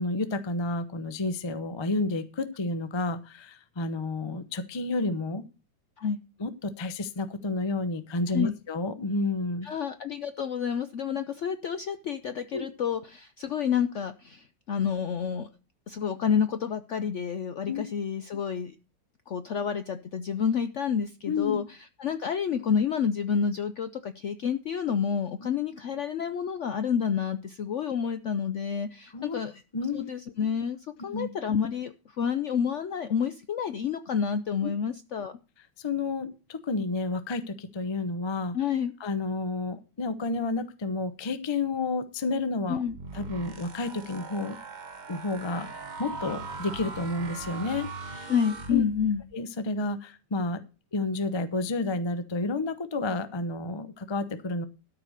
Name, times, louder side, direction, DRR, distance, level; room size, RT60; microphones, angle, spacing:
voice 1, 0.0-5.4 6.4-9.7 12.5-12.7 17.7-17.8 21.3-21.6 29.1-29.4 29.7-30.0 31.1-31.3 34.6-34.7 35.8-38.6 39.0-42.8 43.1-44.6 45.1-45.7 46.0-47.9 48.1-48.3 48.7-48.8 49.3-50.6 50.9-54.6, left 3 dB, 35° left, 11 dB, 0.4 m, -30 dB
voice 2, 9.6-15.5 15.9-18.7 19.3-29.6 29.9-30.8 31.0-35.4 38.5-38.9 42.7-43.0 48.3-49.2, left 7 dB, 65° left, 10 dB, 0.7 m, -29 dB
sound 1, 42.9-49.3, right 3 dB, 35° right, 0.7 m, -40 dB
13.0 x 4.9 x 6.5 m, 0.33 s
omnidirectional pair, 1.9 m